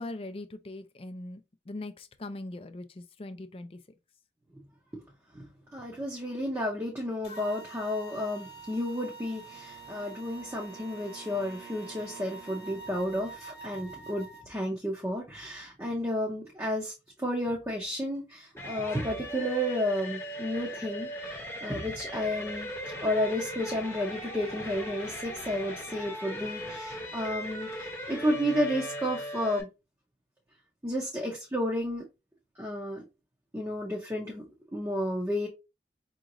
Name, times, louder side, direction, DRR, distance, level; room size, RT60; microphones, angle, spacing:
voice 1, 0.0-3.8, left 2 dB, 30° left, 0.4 m, -41 dB
voice 2, 5.3-16.9 17.2-22.7 23.0-29.7 30.8-32.1 32.6-33.0 33.5-34.4 34.7-35.5, equal, 15° right, 0.7 m, -32 dB
sound 1, 7.2-14.4, right 4 dB, 65° left, 0.9 m, -46 dB
Wind instrument woodwind instrument, 9.3-13.2, right 3 dB, 65° right, 1.3 m, -52 dB
sound 2, 18.6-29.6, equal, 15° left, 0.9 m, -38 dB
5.0 x 2.9 x 2.5 m
head